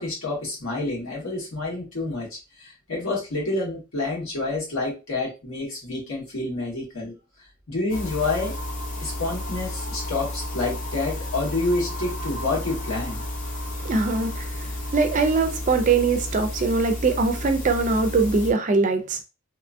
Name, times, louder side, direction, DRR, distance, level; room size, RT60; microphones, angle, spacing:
voice 1, 0.0-7.1 7.7-8.6 9.0-13.2, left 2 dB, 85° left, 1.4 m, -28 dB
sound 1, 7.9-18.5, left 1 dB, 40° left, 0.6 m, -32 dB
voice 2, 13.8-14.5 14.9-19.2, right 4 dB, 40° right, 0.4 m, -22 dB
2.9 x 2.3 x 2.5 m
head